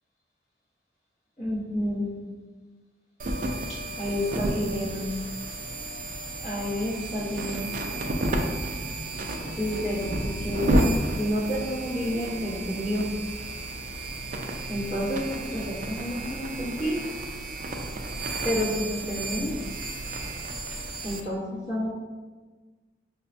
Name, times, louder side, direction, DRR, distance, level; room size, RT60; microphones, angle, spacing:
voice 1, 1.4-2.2 4.0-5.1 6.4-7.7 9.6-10.7 11.2-13.1 14.7-17.1 18.4-19.6 21.0-21.9, equal, 40° left, -10 dB, 1.0 m, -30 dB
sound 1, 3.2-21.2, right 1 dB, 45° right, 0.3 m, -31 dB
5.4 x 2.1 x 2.6 m, 1.3 s
head